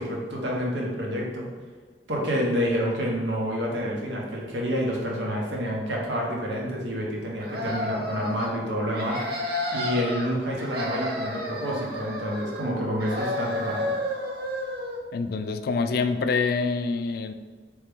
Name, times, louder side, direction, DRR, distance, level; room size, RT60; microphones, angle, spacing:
voice 1, 0.0-1.5 2.1-9.2 9.7-13.9, equal, 85° right, -2 dB, 1.1 m, -28 dB
sound 1, 7.4-8.5 8.9-10.3 10.6-12.7 13.0-15.0, left 1 dB, 60° right, 0.7 m, -31 dB
voice 2, 15.1-17.3, left 4 dB, 55° left, 9 dB, 0.3 m, -26 dB
4.3 x 3.2 x 3.5 m, 1.5 s
head